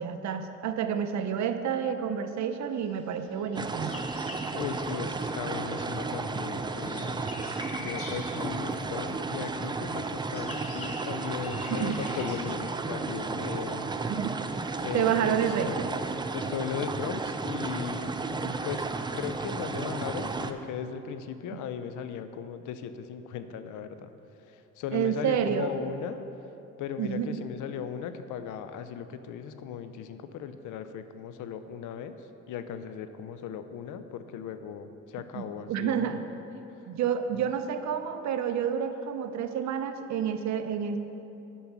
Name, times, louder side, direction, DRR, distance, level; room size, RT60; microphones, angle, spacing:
voice 1, 0.0-4.0 11.7-12.0 14.1-14.3 14.9-15.9 24.9-25.7 27.0-27.3 35.3-36.2 36.9-41.0, right 8 dB, 65° right, 8 dB, 0.7 m, -29 dB
sound 1, 3.3-5.5 5.8-9.4 9.9-14.2, left 2 dB, 50° left, 1.8 m, -45 dB
sound 2, 3.5-20.5, right 3 dB, 15° right, 0.3 m, -33 dB
voice 2, 4.5-7.2 7.8-13.9 14.8-15.9 16.3-24.1 24.5-26.3 26.8-36.2, left 8 dB, 85° left, 10 dB, 0.6 m, -37 dB
Guitar, 8.4-11.6, left 5 dB, 30° left, 0.7 m, -47 dB
8.3 x 5.5 x 6.0 m, 2.9 s
cardioid pair, 90°, 30 cm